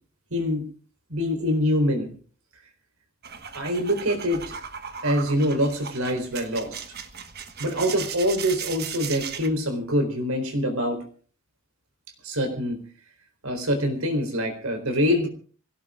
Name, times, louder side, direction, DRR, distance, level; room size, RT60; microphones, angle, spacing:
voice 1, 0.3-0.6 1.1-2.1 3.5-4.6 5.0-6.8 7.6-11.0 12.2-12.8 13.4-15.3, equal, 85° right, 6 dB, 4.1 m, -25 dB
sound 1, 3.2-9.5, right 7 dB, 45° right, 1.3 m, -37 dB
26.5 x 17.0 x 2.5 m, 0.41 s
head